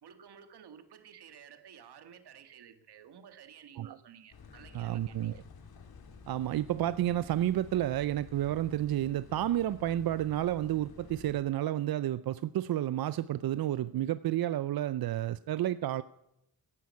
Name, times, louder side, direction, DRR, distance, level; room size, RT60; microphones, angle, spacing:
voice 1, 0.0-5.4, right 8 dB, 90° right, 9 dB, 1.8 m, -53 dB
sound 1, 4.3-11.4, left 5 dB, 70° left, 2.1 m, -52 dB
voice 2, 4.7-5.4 6.3-16.0, right 13 dB, 65° right, 15 dB, 0.5 m, -31 dB
15.5 x 11.0 x 8.3 m, 0.84 s
wide cardioid pair, 140°, 38 cm